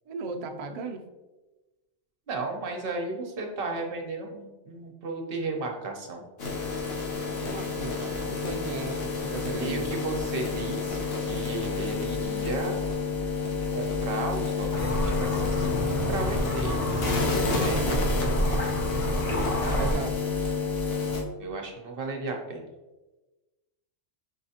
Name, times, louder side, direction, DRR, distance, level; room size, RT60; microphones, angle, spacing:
voice 1, 0.1-1.0 7.4-10.0 17.4-18.0 19.8-20.1, right 3 dB, 90° right, 4 dB, 0.3 m, -36 dB
voice 2, 2.3-6.2 9.6-12.8 13.7-16.8 17.5-17.8 19.6-20.0 21.4-22.6, right 3 dB, 60° right, 2 dB, 0.8 m, -34 dB
sound 1, 6.4-21.2, left 4 dB, 60° left, 0.9 m, -29 dB
sound 2, 14.7-19.9, equal, 40° left, 0.6 m, -29 dB
5.5 x 3.2 x 2.7 m, 1.1 s
omnidirectional pair, 1.2 m